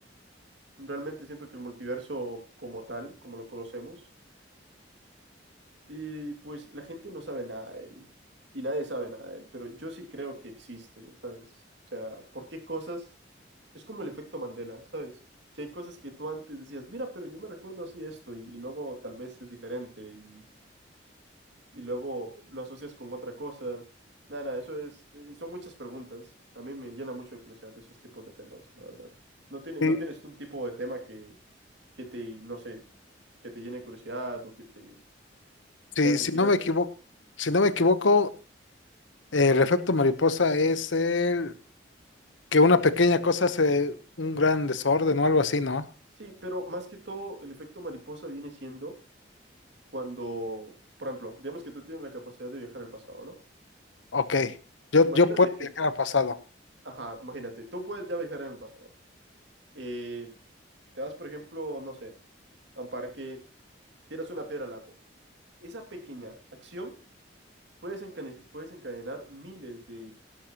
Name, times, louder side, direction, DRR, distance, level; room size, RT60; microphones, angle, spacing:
voice 1, 0.8-4.0 5.9-8.1 8.5-11.4 11.9-13.1 13.7-15.1 15.5-20.4 21.7-23.8 24.3-26.3 26.5-27.9 28.1-29.1 29.5-31.4 32.0-32.8 33.4-35.0 36.0-36.5 46.2-48.9 49.9-50.7 51.0-53.4 55.0-55.7 56.8-58.9 59.7-60.3 61.0-62.1 62.8-63.4 64.1-64.9 65.6-66.4 66.6-67.0 67.8-70.1, right 1 dB, 70° right, 4 dB, 2.6 m, -38 dB
voice 2, 36.0-36.8 37.4-38.3 39.3-41.5 42.5-45.8 54.1-54.5 54.9-55.5 55.8-56.4, left 3 dB, 80° left, 13 dB, 1.0 m, -22 dB
17.0 x 11.5 x 3.0 m, 0.33 s
head